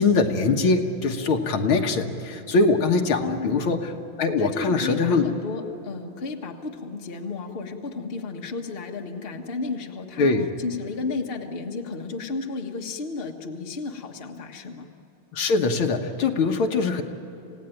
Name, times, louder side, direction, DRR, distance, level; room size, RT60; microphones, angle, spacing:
voice 1, 0.0-3.9 4.2-5.3 10.2-10.5 15.3-17.0, left 3 dB, 75° left, 4 dB, 2.2 m, -22 dB
voice 2, 3.2-3.7 4.4-14.9, left 4 dB, 30° left, 2 dB, 1.4 m, -33 dB
27.5 x 17.0 x 9.2 m, 2.9 s
omnidirectional pair, 2.3 m